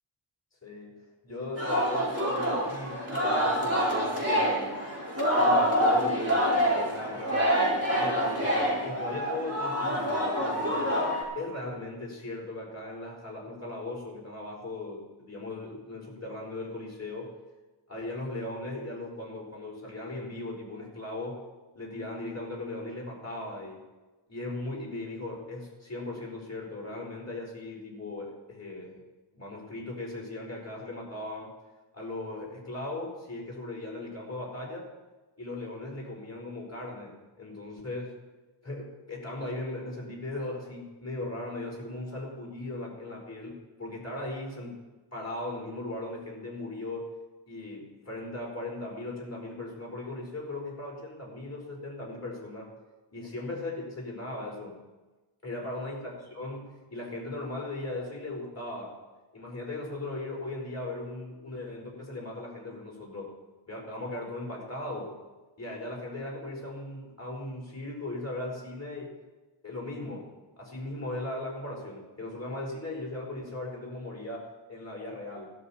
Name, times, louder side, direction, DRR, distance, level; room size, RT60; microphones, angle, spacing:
voice 1, 0.6-4.8 5.4-10.9 11.3-17.3 17.9-21.4 21.7-23.8 24.3-29.0 29.3-31.5 31.9-34.9 35.4-38.1 38.6-44.8 45.1-47.1 47.5-52.7 53.1-54.8 55.4-58.9 59.3-63.3 63.7-65.2 65.6-69.2 69.6-70.3 70.6-75.5, left 2 dB, 30° left, -3 dB, 4.3 m, -38 dB
Singing, 1.5-11.2, equal, 30° right, 4.5 m, -26 dB
16.5 x 12.5 x 4.3 m, 1.2 s
wide cardioid pair, 55°, 49 cm